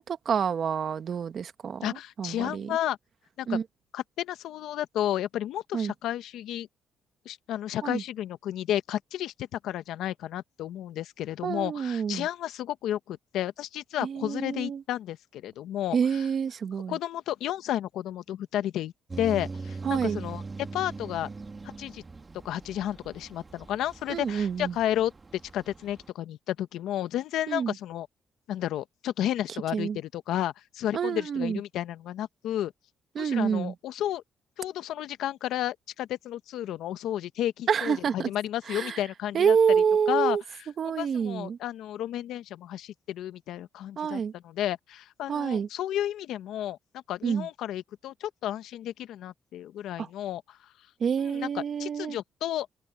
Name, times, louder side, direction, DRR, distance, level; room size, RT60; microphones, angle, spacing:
voice 1, 0.0-2.8 3.5-3.6 5.7-5.9 7.8-8.0 11.4-12.3 14.0-14.8 15.9-17.0 19.8-20.2 24.1-24.8 27.5-27.7 29.7-30.0 30.9-31.6 33.1-33.7 37.7-38.3 38.7-39.0 39.3-40.4 40.8-41.6 44.0-44.3 45.3-45.7 47.2-47.5 50.0-50.1 51.0-52.2, right 7 dB, 55° right, 1.3 m, -27 dB
voice 2, 1.8-3.0 3.4-3.6 3.9-6.7 7.2-16.2 16.9-20.4 20.7-21.3 21.8-22.0 22.4-28.1 28.5-32.7 33.2-34.2 34.6-39.6 40.1-40.4 41.0-50.4 51.2-52.7, left 12 dB, 85° left, 1.0 m, -32 dB
sound 1, 19.1-26.1, right 3 dB, 25° right, 2.0 m, -41 dB
cardioid pair, 90°, 0 cm